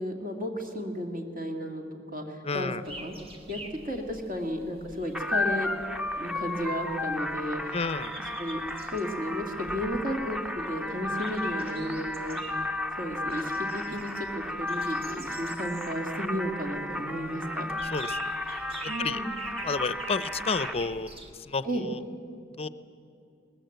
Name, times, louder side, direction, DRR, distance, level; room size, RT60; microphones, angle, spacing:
voice 1, 0.0-1.8 2.1-3.1 3.5-5.7 6.2-7.8 8.4-12.6 13.0-17.7 18.9-19.3 21.6-21.9, equal, 45° right, 3 dB, 2.4 m, -33 dB
voice 2, 2.4-2.8 7.7-8.1 13.9-14.0 17.9-18.3 18.8-19.2 19.6-21.1 21.5-22.0 22.6-22.7, left 4 dB, 30° left, 15 dB, 0.6 m, -31 dB
sound 1, 2.8-21.3, right 1 dB, 30° right, 1.9 m, -47 dB
sound 2, 5.1-20.7, left 1 dB, 5° right, 0.7 m, -34 dB
22.5 x 19.5 x 8.0 m, 2.6 s
head